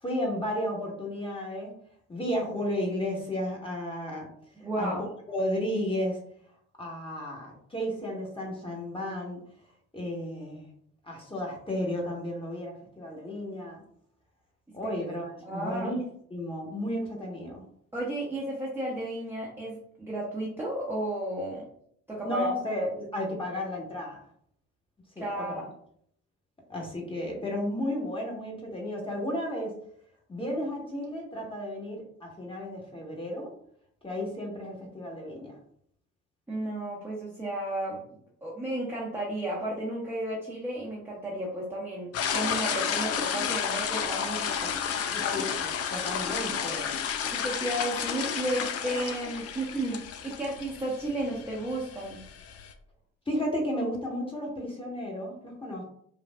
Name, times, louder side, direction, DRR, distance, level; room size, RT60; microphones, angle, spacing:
voice 1, 0.0-1.7 2.1-4.3 4.8-6.2 6.8-9.4 9.9-10.7 11.0-13.8 14.7-16.0 16.3-17.6 22.2-24.2 25.1-25.6 26.7-29.8 30.3-33.5 34.0-35.6 45.1-47.0 53.3-55.8, left 1 dB, 15° left, -1 dB, 1.4 m, -33 dB
voice 2, 4.6-5.0 15.4-15.9 17.9-21.7 22.1-22.5 25.2-25.7 36.5-38.1 38.4-45.1 47.3-52.2, right 1 dB, 5° right, -6 dB, 1.0 m, -33 dB
sound 1, 42.1-52.7, left 7 dB, 40° left, 0.5 m, -32 dB
5.1 x 2.5 x 2.3 m, 0.67 s
figure-of-eight pair, 50°, 37 cm